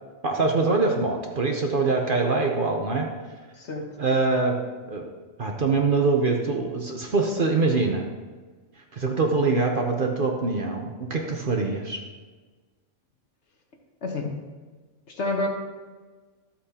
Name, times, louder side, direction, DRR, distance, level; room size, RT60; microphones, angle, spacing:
voice 1, 0.2-3.1 4.0-4.6 4.9-5.1 5.4-8.1 8.9-12.0, right 3 dB, 45° right, 2 dB, 0.9 m, -24 dB
voice 2, 3.5-3.9 14.0-14.4 15.1-15.5, left 2 dB, 55° left, 2 dB, 1.4 m, -28 dB
12.0 x 8.4 x 2.9 m, 1.4 s
omnidirectional pair, 1.4 m